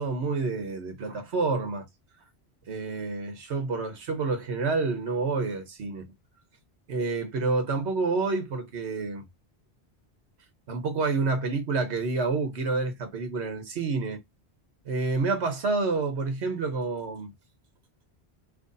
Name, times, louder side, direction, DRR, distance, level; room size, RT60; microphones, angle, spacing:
voice 1, 0.0-1.9 2.7-6.1 6.9-9.3 10.7-14.2 14.8-17.3, right 3 dB, 80° right, 1.3 m, -28 dB
3.0 x 2.5 x 3.9 m
omnidirectional pair, 1.1 m